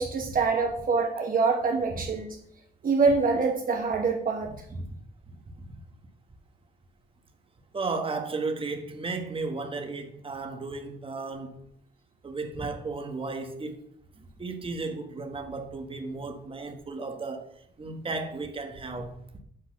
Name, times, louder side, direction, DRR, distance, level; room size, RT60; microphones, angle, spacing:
voice 1, 0.0-2.3 2.8-4.5, right 4 dB, 45° right, 2 dB, 1.1 m, -25 dB
voice 2, 4.5-4.9 5.3-5.7 7.7-11.7 12.2-13.8 14.2-17.5 17.8-19.4, right 3 dB, 25° right, 5 dB, 1.4 m, -34 dB
8.6 x 4.0 x 6.0 m, 0.68 s
cardioid pair, 90°, 20 cm